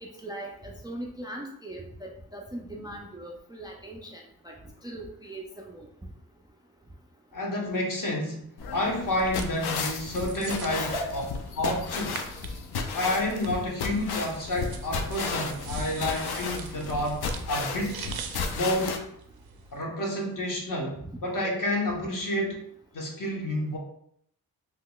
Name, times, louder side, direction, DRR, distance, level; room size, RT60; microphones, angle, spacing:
voice 1, 0.0-4.6 4.8-5.8 10.8-11.2 17.9-18.0 21.4-21.5, right 1 dB, 10° right, 0 dB, 0.3 m, -39 dB
voice 2, 7.3-10.9 11.1-11.2 11.6-12.2 12.9-18.1 18.5-19.0 19.7-22.6 22.9-23.8, left 1 dB, 55° left, -1 dB, 1.0 m, -29 dB
sound 1, 8.6-19.0, left 4 dB, 80° left, 0.5 m, -34 dB
sound 2, 9.1-19.8, right 7 dB, 70° right, 0.5 m, -45 dB
3.7 x 2.9 x 2.3 m, 0.69 s
wide cardioid pair, 110°, 38 cm